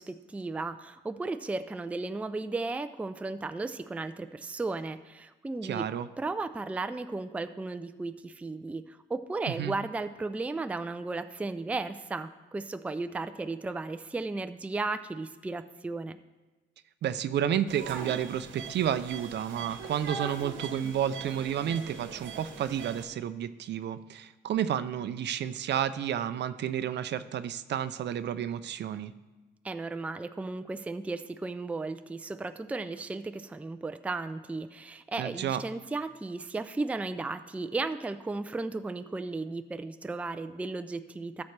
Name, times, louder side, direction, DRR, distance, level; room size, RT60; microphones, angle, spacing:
voice 1, 0.0-5.9 6.2-16.2 29.6-41.4, right 3 dB, 5° right, 9 dB, 0.4 m, -35 dB
voice 2, 5.6-6.1 9.6-9.7 17.0-29.1 35.2-35.6, right 9 dB, 60° right, 13 dB, 0.5 m, -31 dB
sound 1, 17.7-23.0, right 5 dB, 80° right, 1.1 m, -41 dB
13.0 x 7.1 x 3.3 m, 1.2 s
cardioid pair, 90°, 20 cm